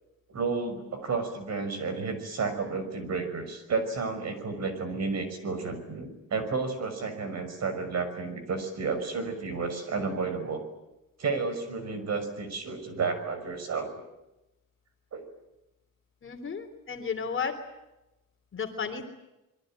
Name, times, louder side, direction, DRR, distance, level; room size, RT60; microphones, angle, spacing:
voice 1, 0.3-10.6 11.2-14.0 15.1-15.2, right 4 dB, 50° right, 9 dB, 6.1 m, -32 dB
voice 2, 16.2-17.6 18.5-19.1, left 6 dB, 35° left, 7 dB, 3.4 m, -33 dB
27.0 x 22.5 x 9.0 m, 0.96 s
cardioid pair, 145°, 35 cm